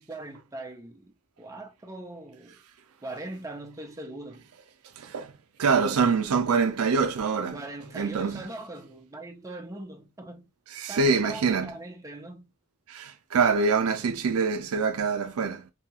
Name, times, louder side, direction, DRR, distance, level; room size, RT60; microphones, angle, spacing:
voice 1, 0.0-2.6 3.0-4.4 7.5-10.5 10.9-12.5, right 2 dB, 15° right, 0.5 m, -41 dB
voice 2, 5.0-5.3 5.6-7.6 7.9-8.5 10.7-11.7 12.9-15.7, right 5 dB, 90° right, 0.5 m, -25 dB
2.7 x 2.3 x 2.8 m
head